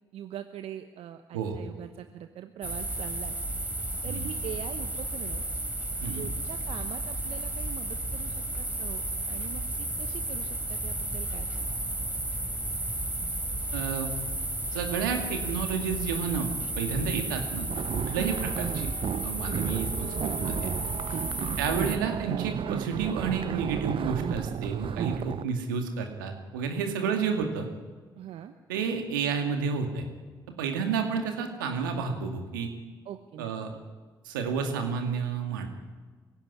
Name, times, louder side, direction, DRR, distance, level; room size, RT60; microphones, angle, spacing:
voice 1, 0.1-3.4 4.0-5.4 6.1-11.8 18.1-18.6 19.5-19.8 21.4-21.6 27.0-27.3 28.2-28.5 33.0-33.8, right 10 dB, 70° right, 8 dB, 1.0 m, -43 dB
sound 1, 2.6-22.0, right 1 dB, 15° right, 3.6 m, -33 dB
voice 2, 13.7-14.1 14.7-16.5 16.8-17.7 18.1-18.9 19.2-20.7 21.6-27.7 28.7-30.0 30.6-32.7 33.4-33.7 34.2-35.7, right 6 dB, 90° right, 4 dB, 2.3 m, -30 dB
sound 2, 17.7-25.4, right 9 dB, 55° right, 0.6 m, -33 dB
23.0 x 16.0 x 9.8 m, 1.4 s
hypercardioid pair, 40°, 10 cm